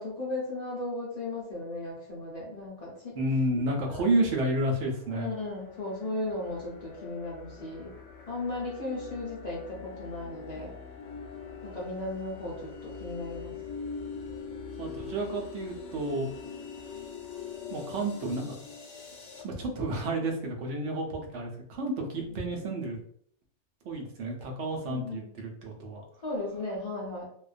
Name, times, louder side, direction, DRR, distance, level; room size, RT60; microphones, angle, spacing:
voice 1, 0.0-3.1 3.6-4.1 5.1-7.9 8.3-10.7 11.6-13.5 22.3-22.4 24.9-25.3 26.2-27.3, left 2 dB, 45° left, -5 dB, 0.6 m, -36 dB
voice 2, 3.2-5.3 14.8-16.3 17.7-18.5 19.4-23.0 23.8-26.0, right 1 dB, 80° right, 2 dB, 0.9 m, -30 dB
sound 1, 4.5-19.4, left 5 dB, 70° left, 0.9 m, -43 dB
2.4 x 2.1 x 2.4 m, 0.62 s
omnidirectional pair, 1.2 m